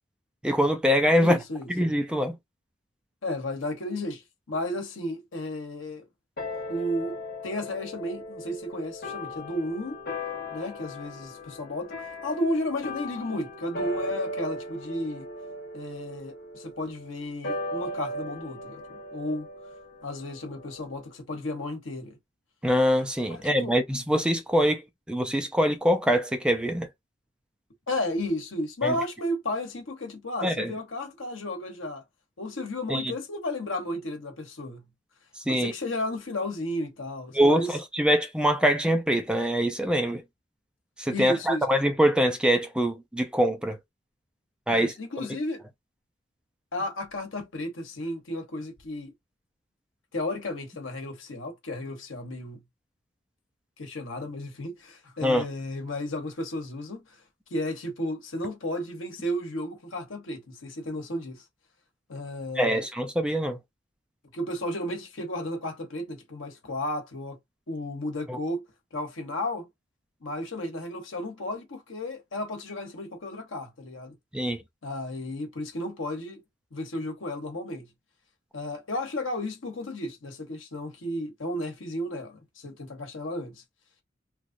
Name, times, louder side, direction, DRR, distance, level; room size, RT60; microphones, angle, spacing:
voice 1, 0.4-1.4 1.7-2.4 22.6-24.8 25.1-26.9 28.8-29.0 30.4-30.7 32.9-33.1 35.5-35.7 37.3-40.2 41.0-43.8 44.7-44.9 55.2-55.4 62.6-63.6 68.3-68.4 74.3-74.6, equal, 5° right, 0.4 m, -24 dB
voice 2, 1.1-1.7 3.2-6.1 6.7-10.0 10.5-11.9 12.2-15.3 15.7-19.5 20.0-22.2 23.3-23.7 27.9-32.0 32.4-34.9 35.5-37.8 41.1-41.6 44.7-45.6 46.7-49.1 50.1-52.6 53.8-57.2 57.5-61.4 62.1-62.9 64.3-67.4 67.7-68.6 68.9-69.7 70.2-74.1 74.8-76.4 76.7-77.9 78.5-83.6, left 1 dB, 80° left, 1.1 m, -33 dB
sound 1, 6.4-21.1, left 1 dB, 50° left, 0.9 m, -37 dB
3.1 x 2.4 x 2.5 m
head